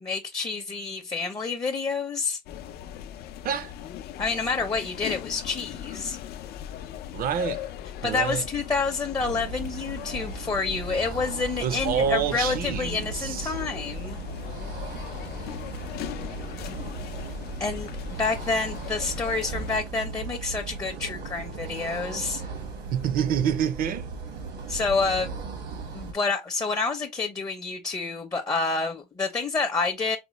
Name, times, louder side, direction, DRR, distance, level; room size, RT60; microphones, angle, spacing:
voice 1, 0.0-2.4 4.2-6.2 8.0-14.2 17.6-17.9 18.2-22.4 24.7-25.3 25.9-30.2, left 4 dB, 20° left, 0.5 m, -28 dB
sound 1, 2.5-19.8, left 10 dB, 70° left, 0.4 m, -39 dB
voice 2, 7.1-7.7 8.0-8.4 11.6-13.5 22.9-24.1, right 8 dB, 60° right, 0.5 m, -27 dB
sound 2, 9.2-26.1, right 4 dB, 85° right, 1.3 m, -37 dB
4.1 x 2.1 x 2.9 m
cardioid pair, 110°, 17 cm